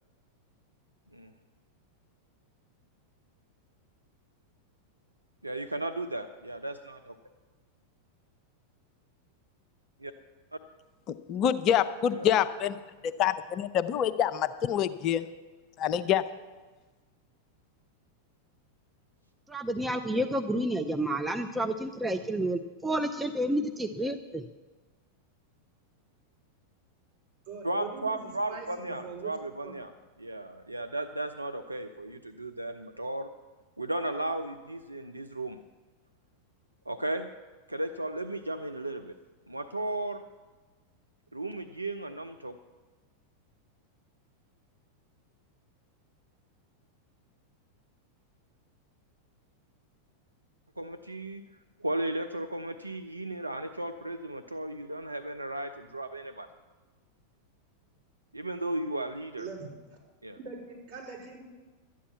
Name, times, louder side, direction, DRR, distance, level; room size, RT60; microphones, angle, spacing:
voice 1, 5.4-7.2 10.0-10.1 12.1-12.3 27.6-29.9 30.2-33.3 33.8-35.6 36.9-37.3 37.7-39.1 39.5-40.2 41.3-42.6 50.8-51.4 51.8-56.5 58.3-59.5 60.2-60.4, right 1 dB, 85° right, 8 dB, 0.5 m, -35 dB
voice 2, 11.3-12.8 13.0-15.2 15.8-16.2, left 9 dB, 35° left, 12 dB, 0.5 m, -26 dB
voice 3, 19.5-24.5, right 1 dB, 10° right, 8 dB, 0.5 m, -30 dB
voice 4, 27.5-29.4 29.6-29.7 59.4-59.7 60.3-61.5, right 5 dB, 55° right, -4 dB, 4.7 m, -42 dB
12.5 x 9.4 x 7.2 m, 1.3 s
figure-of-eight pair, 90°, 0 cm